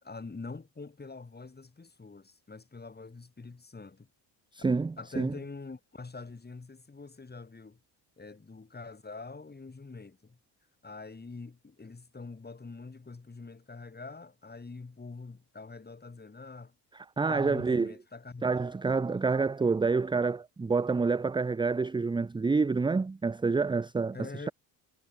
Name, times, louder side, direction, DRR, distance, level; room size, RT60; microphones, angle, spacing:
voice 1, 0.0-4.1 5.0-7.8 8.2-10.4 10.8-16.7 17.3-18.7 19.1-19.2 24.1-24.5, left 3 dB, 20° left, 2.8 m, -45 dB
voice 2, 4.5-5.3 17.2-17.9 18.4-24.2, right 4 dB, 10° right, 0.5 m, -28 dB
supercardioid pair, 65°, 45 cm